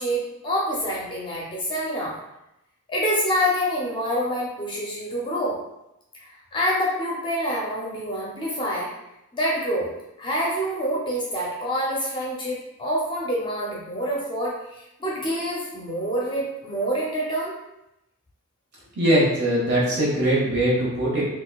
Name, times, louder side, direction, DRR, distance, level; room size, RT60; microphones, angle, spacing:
voice 1, 0.0-2.2 2.9-5.6 6.5-8.9 9.3-9.9 10.2-17.5, equal, 20° left, -4 dB, 0.6 m, -26 dB
voice 2, 19.0-21.2, right 1 dB, 50° right, -6 dB, 1.3 m, -21 dB
4.1 x 2.3 x 2.3 m, 0.88 s
head